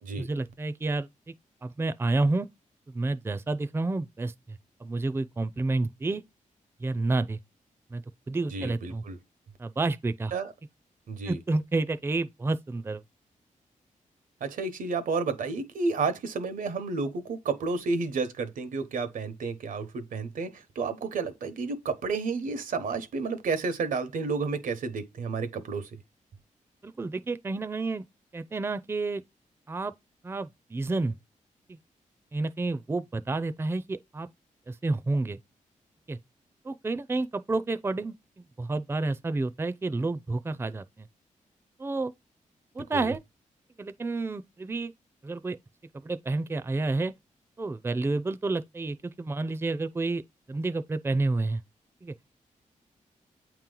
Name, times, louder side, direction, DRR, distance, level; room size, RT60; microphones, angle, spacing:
voice 1, 0.2-1.1 1.6-2.5 2.9-6.2 6.8-7.4 7.9-8.0 8.3-9.0 9.6-10.3 11.3-13.0 26.8-28.0 28.3-29.2 29.7-29.9 30.2-31.1 31.7-31.8 32.3-34.3 34.7-35.4 36.1-36.2 36.6-38.1 38.6-41.1 41.8-42.1 42.7-43.2 43.8-44.9 45.2-45.6 45.9-47.1 47.6-50.2 50.5-51.6 52.0-52.1, right 3 dB, 20° right, 0.4 m, -30 dB
voice 2, 8.5-9.2 10.3-10.5 11.1-11.4 14.4-25.9 42.9-43.1, right 4 dB, 85° right, 1.0 m, -31 dB
8.6 x 3.0 x 3.8 m
cardioid pair, 90°, 14 cm